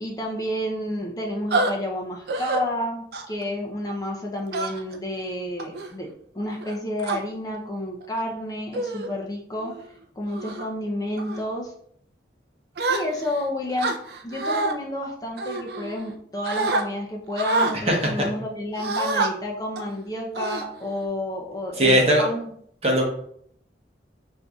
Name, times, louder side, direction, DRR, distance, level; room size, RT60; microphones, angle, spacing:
voice 1, 0.0-6.1 6.3-9.7 10.2-11.7 12.9-13.9 14.2-22.5, left 1 dB, 20° left, -1 dB, 0.5 m, -30 dB
sound 1, 1.5-1.7 2.3-2.6 3.1-3.4 4.5-5.0 5.6-5.9 6.6-7.2 8.0-8.2 8.7-9.1 9.6-9.8 10.3-10.6 11.2-11.4 12.8-13.4 13.8-14.7 15.4-16.1 16.4-16.8 17.4-17.8 18.8-19.3 19.8-19.9 20.3-21.0, right 3 dB, 60° right, 0.4 m, -27 dB
voice 2, 21.8-22.2 22.8-23.0, equal, 35° right, 0 dB, 0.8 m, -18 dB
6.2 x 2.6 x 2.3 m, 0.66 s
head